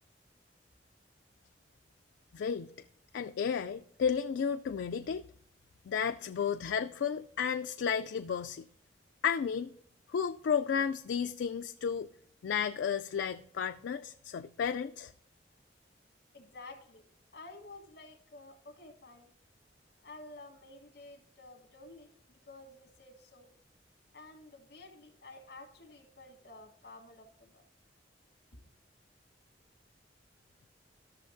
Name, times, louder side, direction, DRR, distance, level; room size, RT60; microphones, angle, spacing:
voice 1, 2.3-2.7 3.1-5.2 5.9-8.7 9.2-9.7 10.1-12.1 12.4-15.1, left 7 dB, 85° left, 0.3 m, -32 dB
voice 2, 16.3-17.1 17.3-19.3 20.0-23.5 24.1-27.6 28.5-28.6, left 2 dB, 60° left, 1.8 m, -52 dB
14.0 x 6.6 x 2.6 m
head